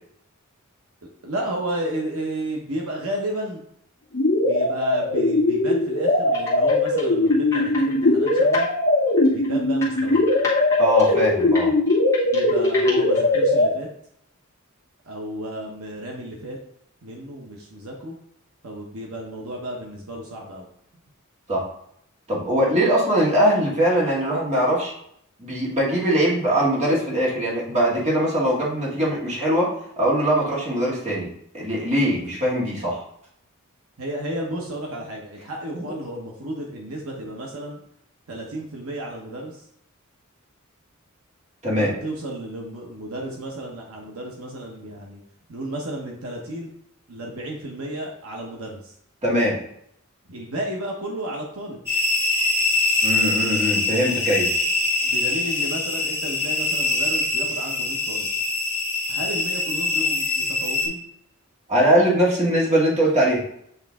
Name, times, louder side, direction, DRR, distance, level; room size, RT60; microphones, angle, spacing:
voice 1, 1.2-3.6 4.4-8.7 9.3-10.2 12.3-13.9 15.0-16.6 17.0-18.2 18.6-20.7 34.0-37.8 38.3-39.7 41.8-45.2 45.5-46.7 47.1-48.9 50.3-51.8 55.0-58.3 59.1-61.0, right 1 dB, 70° right, -1 dB, 1.0 m, -32 dB
sound 1, 4.1-13.7, left 2 dB, 45° left, 0.8 m, -20 dB
sound 2, 6.3-8.7 9.1-13.4, left 3 dB, 15° left, 1.9 m, -31 dB
voice 2, 10.8-11.7 21.5-21.6 22.3-24.9 25.4-31.3 31.5-33.0 35.7-35.8 41.6-41.9 49.2-49.6 53.0-54.5 61.7-63.4, equal, 30° right, -5 dB, 1.8 m, -21 dB
sound 3, 51.9-60.9, left 3 dB, 10° right, 2.0 m, -23 dB
8.3 x 3.2 x 3.6 m, 0.70 s
head